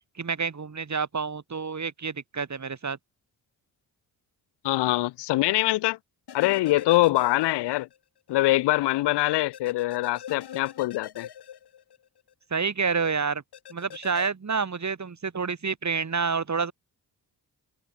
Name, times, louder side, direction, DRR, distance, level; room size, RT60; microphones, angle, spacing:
voice 1, 0.2-3.0 12.5-13.4 13.7-16.7, right 5 dB, 45° right, 2.7 m, -28 dB
voice 2, 4.6-6.0 6.3-7.9 8.3-11.3, left 17 dB, 90° left, 0.6 m, -24 dB
sound 1, 6.3-8.0 8.3-8.4 9.5-12.3 13.5-14.3, left 9 dB, 75° left, 2.6 m, -43 dB
supercardioid pair, 50°, 40 cm